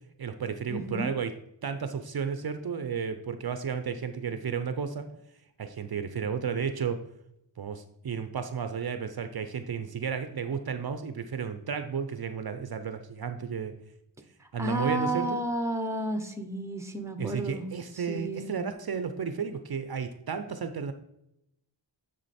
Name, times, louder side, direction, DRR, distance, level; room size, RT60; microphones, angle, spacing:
voice 1, 0.2-1.3 1.6-5.1 5.6-7.0 7.6-13.8 14.5-15.4 17.2-20.9, right 6 dB, 55° right, 9 dB, 0.6 m, -33 dB
voice 2, 0.7-1.1 14.4-17.6 18.1-18.6, right 1 dB, 5° right, 7 dB, 0.8 m, -32 dB
9.6 x 3.8 x 4.2 m, 0.80 s
wide cardioid pair, 95°, 46 cm